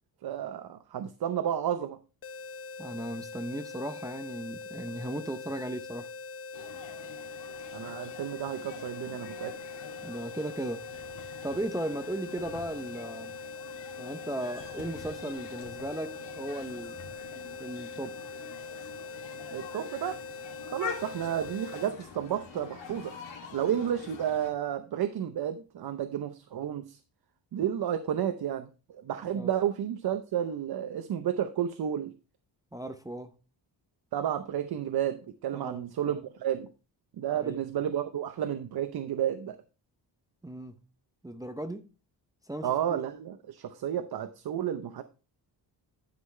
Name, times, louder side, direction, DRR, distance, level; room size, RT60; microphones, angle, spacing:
voice 1, 0.2-2.0 7.7-9.6 19.5-20.2 20.7-23.1 23.5-27.0 27.5-32.1 34.1-36.7 37.2-39.6 42.6-45.0, right 10 dB, 60° right, 0.7 m, -31 dB
sound 1, 2.2-21.9, left 4 dB, 30° left, 0.6 m, -43 dB
voice 2, 2.8-6.1 10.0-10.8 11.4-13.3 14.0-17.0 17.6-18.2 29.3-29.5 32.7-33.3 35.5-36.2 37.3-37.6 40.4-40.8 41.2-41.9 42.5-43.0, right 1 dB, 10° right, 0.5 m, -36 dB
sound 2, 6.5-24.5, left 6 dB, 80° left, 2.6 m, -46 dB
11.5 x 5.7 x 3.2 m
cardioid pair, 130°, 43 cm